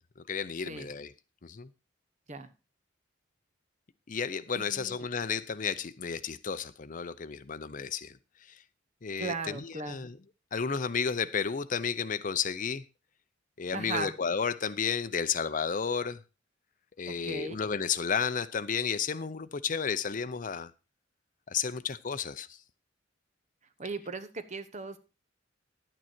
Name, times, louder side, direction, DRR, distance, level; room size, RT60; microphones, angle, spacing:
voice 1, 0.3-1.1 1.4-1.7 4.1-8.1 9.0-10.2 10.5-12.8 13.6-16.2 17.0-20.7 21.5-22.5, left 6 dB, 45° left, 0.6 m, -32 dB
voice 2, 4.5-5.0 9.2-10.0 13.7-14.1 17.1-17.6 23.8-25.0, right 3 dB, 40° right, 1.1 m, -37 dB
11.0 x 9.1 x 4.4 m
head